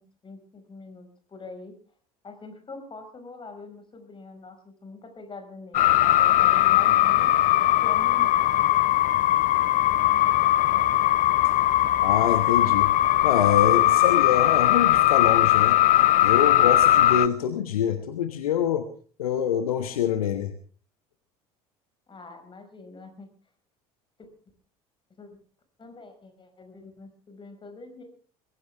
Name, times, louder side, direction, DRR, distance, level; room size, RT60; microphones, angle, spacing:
voice 1, 0.0-1.7 2.2-7.3 7.8-8.3 22.1-23.3 24.2-24.3 25.2-25.4 25.8-28.0, left 3 dB, 25° left, 6 dB, 5.4 m, -44 dB
sound 1, 5.7-17.3, left 14 dB, 45° left, 0.8 m, -20 dB
voice 2, 12.0-12.9 13.2-15.8 16.2-18.9 19.2-20.5, left 9 dB, 70° left, 9 dB, 1.3 m, -25 dB
22.5 x 15.5 x 3.5 m, 0.42 s
figure-of-eight pair, 65°, 19 cm